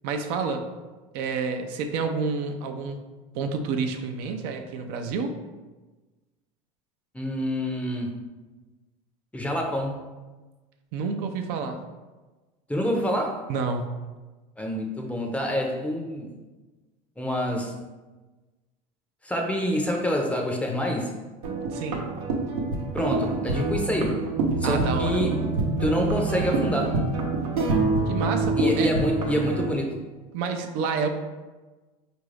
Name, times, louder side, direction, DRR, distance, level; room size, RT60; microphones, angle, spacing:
voice 1, 0.0-0.6 1.1-3.0 3.3-5.4 10.9-11.8 13.5-13.9 21.7-22.1 24.6-25.4 28.1-28.9 30.3-31.1, right 5 dB, 65° right, 6 dB, 0.5 m, -29 dB
voice 2, 7.1-8.1 9.3-10.0 12.7-13.4 14.6-16.3 17.2-17.7 19.2-21.1 22.9-24.2 24.6-25.3 25.8-27.0 28.6-30.0, equal, 5° left, 1 dB, 0.6 m, -26 dB
sound 1, 21.4-29.7, right 3 dB, 90° right, 0.8 m, -26 dB
4.6 x 2.5 x 3.2 m, 1.2 s
supercardioid pair, 105°, 18 cm